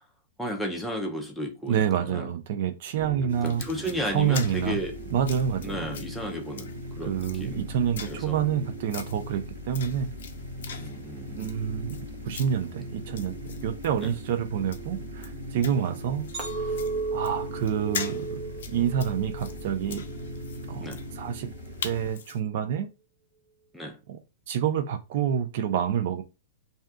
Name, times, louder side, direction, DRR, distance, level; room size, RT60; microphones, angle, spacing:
voice 1, 0.4-2.3 3.4-4.9 5.6-6.7 7.0-7.6 8.1-8.4 10.7-11.5 14.0-14.1 20.8-21.0 23.7-24.0, equal, ahead, 0.6 m, -33 dB
voice 2, 1.7-3.6 4.1-4.8 5.1-5.9 7.1-10.1 11.4-12.0 12.3-13.3 13.6-16.3 16.6-16.8 17.1-18.4 18.7-20.0 20.7-20.9 21.1-21.5 21.8-22.9 24.1-24.2 24.5-26.2, right 8 dB, 55° right, 0.4 m, -28 dB
sound 1, 3.0-22.1, equal, 80° right, 0.8 m, -39 dB
sound 2, 3.3-22.4, left 7 dB, 80° left, 0.5 m, -43 dB
Chink clink, 16.3-20.7 21.1-21.6, right 4 dB, 25° right, 0.8 m, -35 dB
2.7 x 2.2 x 3.4 m
supercardioid pair, 155°, 0 cm